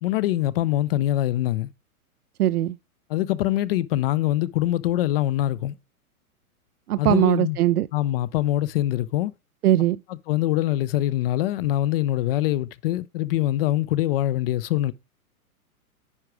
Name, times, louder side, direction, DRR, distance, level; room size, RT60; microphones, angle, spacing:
voice 1, 0.0-1.7 3.1-5.8 7.0-7.6 7.9-9.3 10.3-14.9, left 14 dB, 40° left, 0.5 m, -24 dB
voice 2, 2.4-2.8 6.9-7.9 9.6-10.0, right 13 dB, 85° right, 0.5 m, -20 dB
9.8 x 4.9 x 4.7 m
hypercardioid pair, 125°, 44 cm